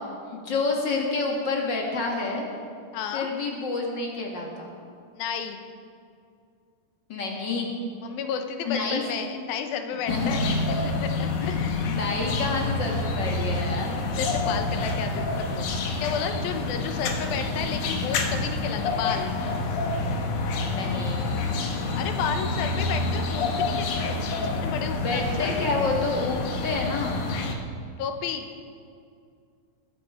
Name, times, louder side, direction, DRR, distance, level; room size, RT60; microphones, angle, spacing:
voice 1, 0.3-2.5 3.1-4.7 7.1-7.7 8.7-9.0 10.1-10.5 11.4-11.6 11.9-14.1 20.7-21.3 24.9-27.2, left 3 dB, 40° left, 0 dB, 1.8 m, -28 dB
voice 2, 2.9-3.3 5.1-5.6 8.0-10.4 10.8-11.8 14.2-19.4 22.0-25.6 28.0-28.5, left 6 dB, 90° left, 6 dB, 2.8 m, -32 dB
sound 1, 10.1-27.5, left 3 dB, 65° left, 2.4 m, -28 dB
21.0 x 9.3 x 4.9 m, 2.3 s
omnidirectional pair, 4.1 m